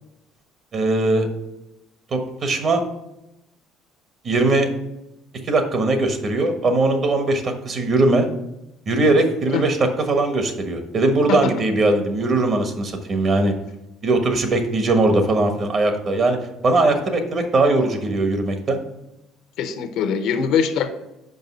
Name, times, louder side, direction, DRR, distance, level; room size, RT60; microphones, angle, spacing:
voice 1, 0.7-1.3 2.1-2.8 4.2-4.7 5.4-8.3 8.9-9.8 10.1-13.5 14.0-16.4 16.6-18.8, right 2 dB, 45° right, 6 dB, 1.3 m, -20 dB
voice 2, 19.6-20.9, left 7 dB, 70° left, 9 dB, 0.8 m, -22 dB
5.4 x 5.3 x 5.4 m, 0.89 s
cardioid pair, 105°, 0 cm